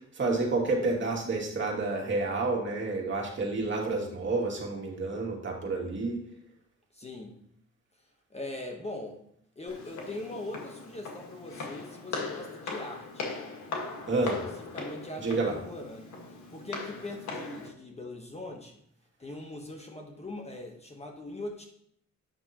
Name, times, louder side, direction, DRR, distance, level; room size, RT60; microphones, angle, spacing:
voice 1, 0.0-6.2 14.1-14.4 15.2-15.5, right 3 dB, 40° right, -1 dB, 2.3 m, -29 dB
voice 2, 6.9-7.4 8.0-9.2 9.6-13.3 14.2-18.8 19.2-21.7, left 2 dB, 20° left, 2 dB, 1.2 m, -41 dB
Walk footsteps, 9.7-17.7, left 3 dB, 70° left, 1.7 m, -39 dB
9.2 x 6.1 x 2.9 m, 0.70 s
cardioid pair, 90°, 30 cm